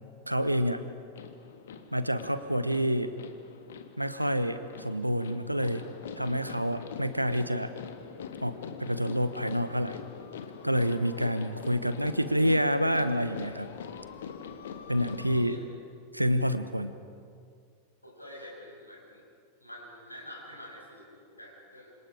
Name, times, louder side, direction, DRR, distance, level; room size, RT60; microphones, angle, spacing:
voice 1, 0.3-0.8 1.9-3.1 4.0-5.8 6.2-7.7 8.4-10.0 10.6-13.7 14.9-15.6 16.1-16.9, equal, 90° right, 12 dB, 1.1 m, -28 dB
sound 1, 1.1-15.5, left 7 dB, 60° left, 1.7 m, -44 dB
voice 2, 15.2-15.6 18.0-19.2 19.6-21.9, left 1 dB, 85° left, -2 dB, 6.6 m, -47 dB
27.5 x 26.5 x 5.1 m, 2.2 s
figure-of-eight pair, 90°, 0 cm